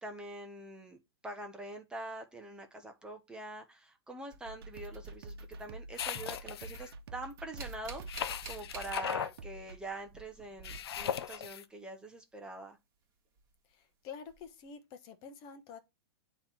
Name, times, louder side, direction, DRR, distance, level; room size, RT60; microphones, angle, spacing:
voice 1, 0.0-12.8, right 2 dB, 5° right, 0.7 m, -45 dB
sound 1, 4.3-6.0 6.2-9.4 9.7-11.5 13.4-13.5 14.3-14.4, right 5 dB, 25° right, 1.6 m, -50 dB
sound 2, 4.4-9.8, right 2 dB, 65° right, 0.9 m, -48 dB
sound 3, 5.9-6.9 8.1-9.4 10.6-11.6, left 9 dB, 75° left, 0.6 m, -38 dB
voice 2, 13.6-15.8, left 6 dB, 30° left, 0.9 m, -48 dB
8.6 x 3.0 x 4.3 m
hypercardioid pair, 145°, 13 cm